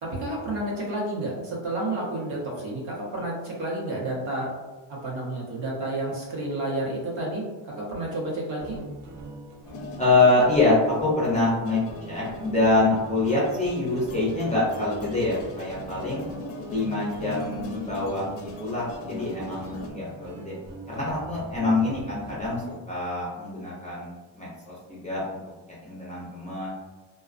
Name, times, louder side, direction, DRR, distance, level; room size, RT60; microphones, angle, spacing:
voice 1, 0.0-4.5 5.0-8.8, right 1 dB, 75° right, -4 dB, 1.0 m, -30 dB
sound 1, 8.6-22.7, right 2 dB, 35° right, 0.7 m, -43 dB
sound 2, 9.6-19.9, left 3 dB, 75° left, 0.5 m, -40 dB
voice 2, 10.0-16.2 16.7-20.6 20.9-25.4 25.8-26.7, left 2 dB, 15° left, -8 dB, 0.5 m, -25 dB
2.3 x 2.3 x 2.4 m, 1.2 s
cardioid pair, 145°, 48 cm